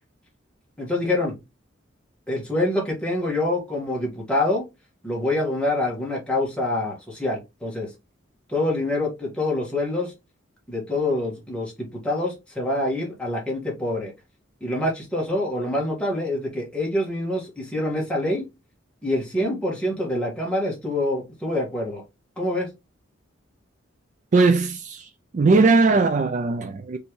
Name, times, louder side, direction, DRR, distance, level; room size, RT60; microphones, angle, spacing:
voice 1, 0.8-1.3 2.3-4.6 5.0-7.9 8.5-10.1 10.7-14.1 14.6-18.5 19.0-22.0 22.4-22.7, left 1 dB, 5° left, 1.7 m, -26 dB
voice 2, 24.3-27.0, right 3 dB, 40° right, 0.3 m, -19 dB
4.3 x 3.4 x 3.1 m
head